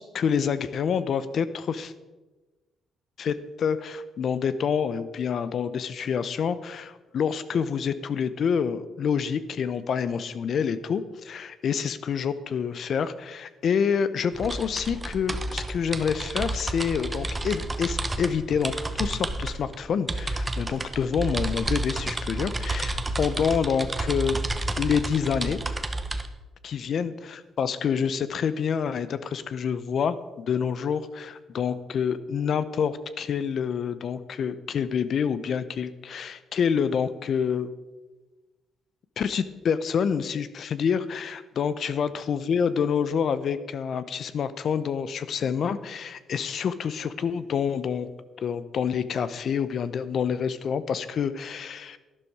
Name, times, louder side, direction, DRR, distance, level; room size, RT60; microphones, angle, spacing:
voice 1, 0.0-1.9 3.2-18.7 19.0-24.4 24.8-25.6 26.6-37.7 39.2-48.1 48.4-52.0, left 7 dB, 60° left, 14 dB, 0.7 m, -27 dB
sound 1, 14.3-26.3, right 2 dB, 20° right, 0.9 m, -31 dB
12.0 x 11.0 x 4.8 m, 1.2 s
cardioid pair, 90°, 0 cm